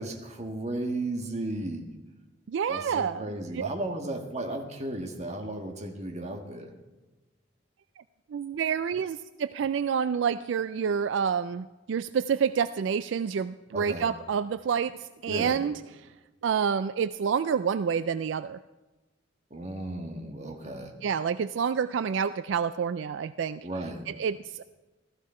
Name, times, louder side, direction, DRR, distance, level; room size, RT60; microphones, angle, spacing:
voice 1, 0.0-1.9 2.7-6.7 13.7-14.1 15.3-15.6 19.5-20.9 23.6-24.1, right 1 dB, 35° right, 4 dB, 1.5 m, -34 dB
voice 2, 2.5-3.7 8.3-16.1 16.4-18.6 21.0-23.6 24.1-24.6, right 7 dB, 75° right, 14 dB, 0.3 m, -28 dB
15.5 x 14.0 x 4.3 m, 1.1 s
head